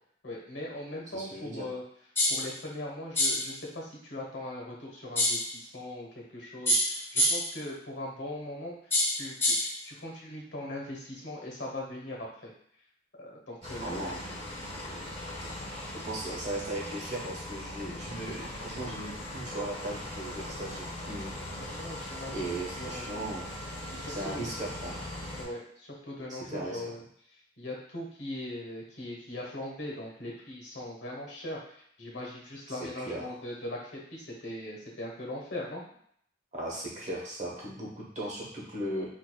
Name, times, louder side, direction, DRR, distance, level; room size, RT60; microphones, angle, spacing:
voice 1, 0.2-1.8 2.3-8.8 9.2-12.5 13.2-14.2 14.7-15.0 15.4-15.5 21.3-22.5 22.8-23.2 23.9-24.4 25.4-27.0 27.6-35.8, left 1 dB, 70° left, -2 dB, 1.1 m, -40 dB
voice 2, 1.1-1.7 13.8-14.2 15.9-21.3 22.3-23.5 24.1-25.0 26.3-26.9 32.7-33.4 36.5-39.1, right 1 dB, 40° right, -4 dB, 1.0 m, -37 dB
sound 1, 2.2-2.5 3.2-3.5 5.2-5.5 6.7-7.6 8.9-9.8, left 1 dB, 15° left, 0.5 m, -26 dB
sound 2, 13.6-25.4, left 1 dB, 30° left, 0.9 m, -40 dB
4.6 x 2.6 x 2.2 m, 0.66 s
head